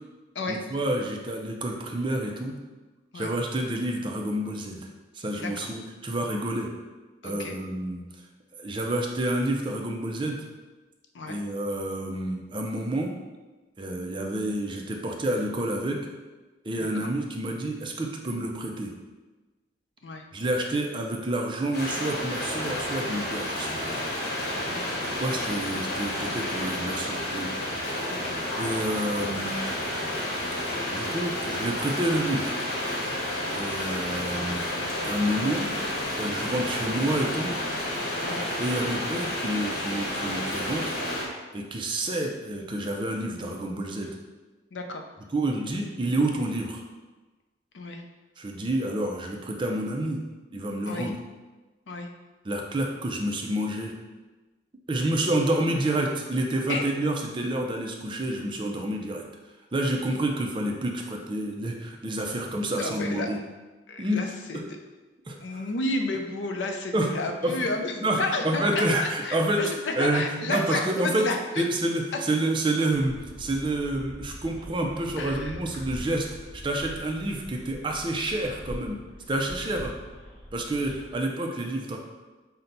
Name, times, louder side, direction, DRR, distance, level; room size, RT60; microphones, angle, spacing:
voice 1, 0.5-2.6 3.1-4.9 5.1-6.7 7.2-8.0 8.6-10.4 11.3-13.1 13.8-16.0 16.6-18.9 20.3-23.9 25.2-27.5 28.6-29.6 30.9-32.5 33.5-34.6 35.0-35.7 36.2-37.5 38.6-41.0 41.5-44.1 45.3-46.8 48.4-50.2 50.5-51.1 52.4-53.9 54.9-59.2 59.7-63.4 64.0-64.2 64.5-64.6 65.3-65.6 66.9-67.1 67.4-67.7 68.0-69.6 70.0-71.2 71.6-79.0 79.3-79.9 80.5-82.0, right 1 dB, 25° right, 1 dB, 0.5 m, -28 dB
voice 2, 5.3-5.7 7.2-7.6 11.1-11.4 16.8-17.1 20.0-20.2 24.7-25.0 28.1-28.4 38.2-38.4 44.7-45.0 47.7-48.0 50.9-51.1 51.9-52.1 56.7-56.8 62.7-63.3 63.9-64.6 65.4-71.6 75.2-75.5, left 2 dB, 85° left, 4 dB, 0.5 m, -32 dB
sound 1, 21.7-41.2, left 1 dB, 55° left, 1.0 m, -30 dB
sound 2, 72.9-81.2, equal, ahead, 1.2 m, -43 dB
5.6 x 2.2 x 3.9 m, 1.2 s
head